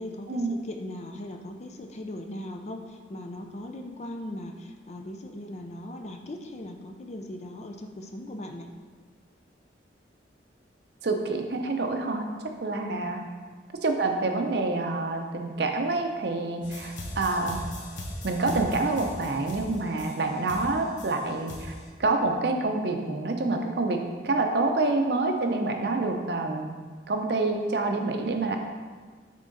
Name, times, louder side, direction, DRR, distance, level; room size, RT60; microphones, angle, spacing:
voice 1, 0.0-8.7 12.8-13.1 20.7-20.9, left 1 dB, 35° left, 4 dB, 0.5 m, -39 dB
voice 2, 11.0-12.3 12.6-13.2 13.8-17.6 18.2-21.7 22.0-26.7 27.1-28.6, right 3 dB, 60° right, 4 dB, 0.6 m, -27 dB
sound 1, 16.6-21.8, left 1 dB, 75° left, 0.9 m, -39 dB
7.4 x 3.7 x 3.9 m, 1.5 s
head